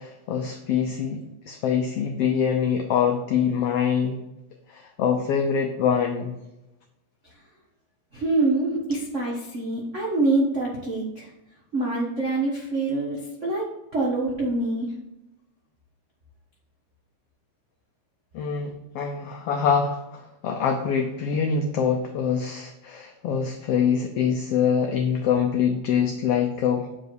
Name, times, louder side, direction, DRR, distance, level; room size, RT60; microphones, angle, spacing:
voice 1, 0.0-4.2 4.7-6.3 18.3-26.9, left 7 dB, 90° left, 4 dB, 1.3 m, -24 dB
voice 2, 8.1-11.3 11.7-13.7 13.9-14.9, right 2 dB, 60° right, -4 dB, 0.7 m, -25 dB
8.0 x 5.0 x 4.6 m, 0.93 s
omnidirectional pair, 3.5 m